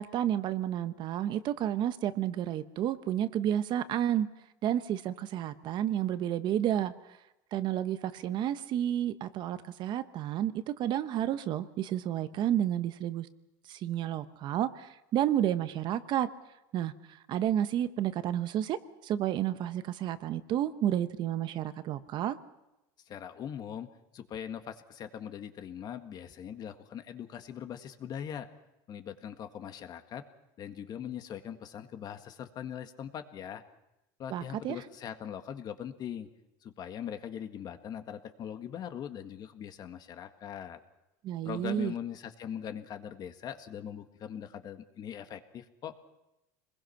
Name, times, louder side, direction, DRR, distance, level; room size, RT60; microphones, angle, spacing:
voice 1, 0.0-4.3 4.6-6.9 7.5-13.3 13.7-16.3 16.7-22.4 34.3-34.8 41.2-41.9, right 11 dB, 50° right, 12 dB, 1.1 m, -31 dB
voice 2, 23.1-23.9 24.1-28.5 28.9-30.2 30.6-33.6 34.2-36.3 36.6-40.8 41.5-45.9, left 9 dB, 40° left, 8 dB, 1.7 m, -41 dB
26.5 x 21.0 x 5.9 m, 0.92 s
supercardioid pair, 120°, 10 cm